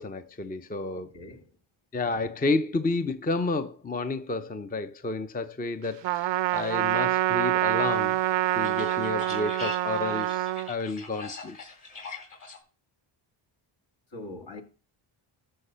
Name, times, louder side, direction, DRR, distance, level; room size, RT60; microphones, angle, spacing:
voice 1, 0.0-1.1 1.9-8.2 8.5-11.6, left 3 dB, 20° left, 0.6 m, -31 dB
voice 2, 0.9-1.6 14.1-14.6, left 2 dB, 60° left, 2.2 m, -42 dB
Trumpet, 6.0-10.7, right 15 dB, 60° right, 0.5 m, -26 dB
sound 1, 7.2-12.6, left 4 dB, 40° left, 4.0 m, -43 dB
13.0 x 5.0 x 5.6 m
cardioid pair, 85°, 50 cm